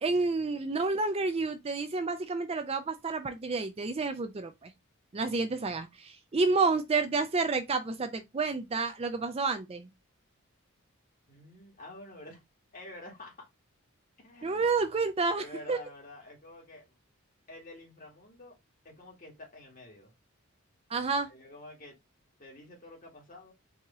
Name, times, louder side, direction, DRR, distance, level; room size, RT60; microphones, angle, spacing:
voice 1, 0.0-4.7 5.1-9.9 14.4-15.8 20.9-21.3, right 3 dB, 30° right, 0.4 m, -30 dB
voice 2, 11.3-12.4 12.7-13.5 14.2-14.6 15.4-16.9 17.5-18.6 18.8-20.1 21.1-22.0 22.4-23.5, left 2 dB, 40° left, 2.2 m, -49 dB
4.7 x 2.9 x 3.5 m
head